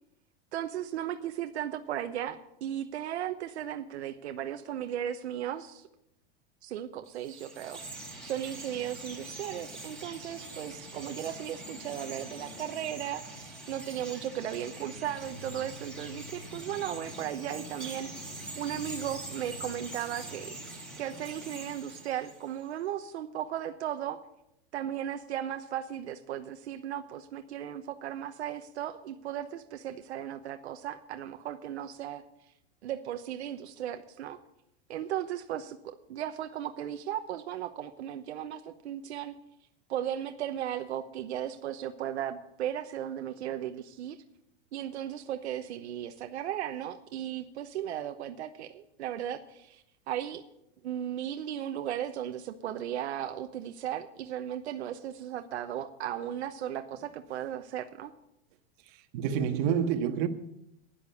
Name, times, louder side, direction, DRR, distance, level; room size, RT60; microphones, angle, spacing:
voice 1, 0.5-5.9 6.6-18.1 18.6-20.5 21.0-24.2 24.7-32.2 32.8-34.4 34.9-39.3 39.9-44.2 44.7-50.4 50.8-58.1, right 10 dB, 85° right, 1.0 m, -36 dB
Chirp tweet, 7.1-22.7, right 2 dB, 5° left, 4.6 m, -44 dB
voice 2, 58.9-60.3, right 8 dB, 50° right, 1.6 m, -28 dB
11.5 x 10.5 x 7.0 m
supercardioid pair, 140°, 32 cm